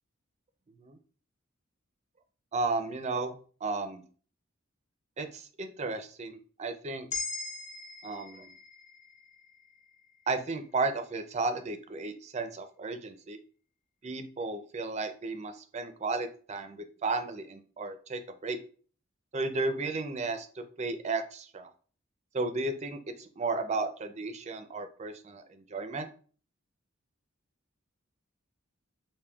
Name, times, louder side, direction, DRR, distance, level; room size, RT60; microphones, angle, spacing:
voice 1, 2.5-3.3 3.6-4.0 5.2-7.1 8.0-8.5 10.3-13.4 14.0-18.6 19.3-21.7 22.3-26.1, right 3 dB, 35° right, 8 dB, 0.4 m, -34 dB
sound 1, 7.1-11.4, left 4 dB, 35° left, 0.4 m, -42 dB
5.1 x 2.7 x 2.3 m, 0.41 s
head